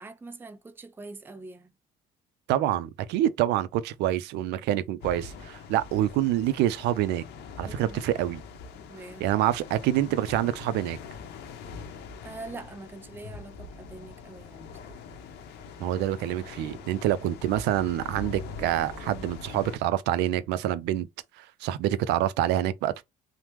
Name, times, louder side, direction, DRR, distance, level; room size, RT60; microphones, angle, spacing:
voice 1, 0.0-1.7 7.6-8.0 8.9-9.3 12.2-15.0, right 3 dB, 10° right, 0.4 m, -44 dB
voice 2, 2.5-7.2 7.6-8.4 9.2-11.0 15.8-21.1 21.4-23.0, right 12 dB, 85° right, 0.4 m, -26 dB
sound 1, 5.0-19.8, left 5 dB, 80° left, 0.7 m, -43 dB
3.3 x 2.0 x 2.9 m
cardioid pair, 110°, 17 cm